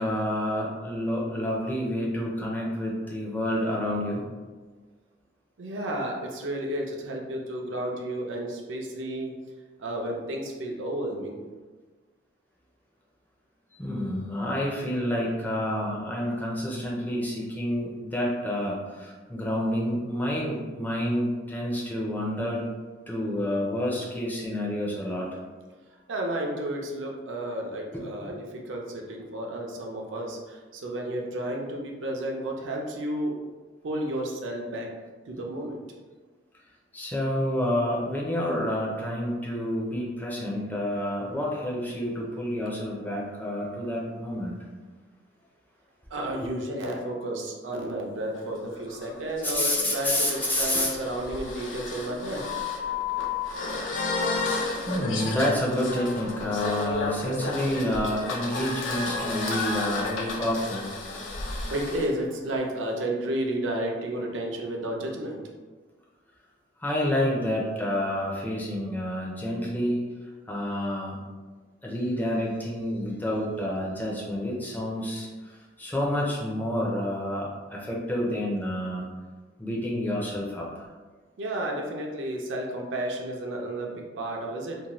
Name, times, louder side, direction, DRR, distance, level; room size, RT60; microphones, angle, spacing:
voice 1, 0.0-4.2 13.8-22.6 23.1-25.3 27.9-28.0 36.9-44.6 49.4-50.9 53.1-61.1 66.8-70.1 70.5-71.2 71.8-79.1 79.6-80.9, left 1 dB, 10° left, -4 dB, 0.4 m, -29 dB
voice 2, 5.6-9.4 9.8-11.4 26.1-33.3 33.8-34.9 35.3-35.8 46.1-52.7 61.7-65.4 81.4-84.8, right 1 dB, 80° right, 0 dB, 0.5 m, -32 dB
sound 1, 48.3-62.1, left 3 dB, 80° left, 0.5 m, -32 dB
2.6 x 2.1 x 3.0 m, 1.3 s
head